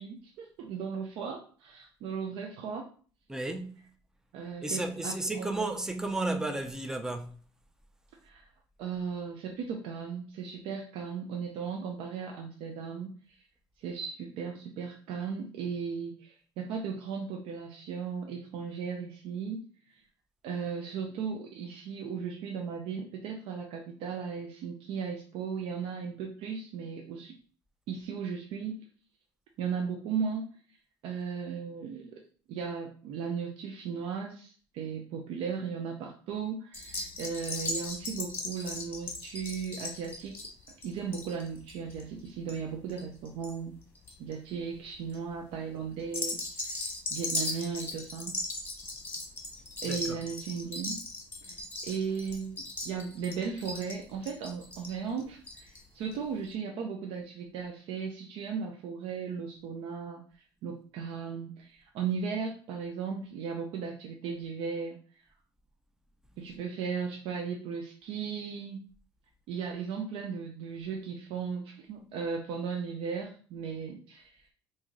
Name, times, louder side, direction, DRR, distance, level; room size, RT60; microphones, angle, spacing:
voice 1, 0.0-2.9 4.3-5.5 8.2-8.5 8.8-13.4 13.8-19.6 19.9-20.0 20.4-27.3 27.9-28.8 29.6-30.5 31.0-32.1 32.5-40.5 40.8-43.7 44.2-48.3 49.8-51.0 51.5-65.0 66.4-68.8 69.5-74.5, right 6 dB, 75° right, 0.5 m, -36 dB
voice 2, 3.3-3.8 4.6-7.4 49.9-50.2, right 2 dB, 5° right, 0.5 m, -33 dB
sound 1, 36.7-43.5 43.8-44.3 44.9-45.2 46.0-55.8 56.1-56.2 56.4-56.5, left 2 dB, 25° left, 1.2 m, -38 dB
3.1 x 2.7 x 3.6 m
cardioid pair, 105°, 9 cm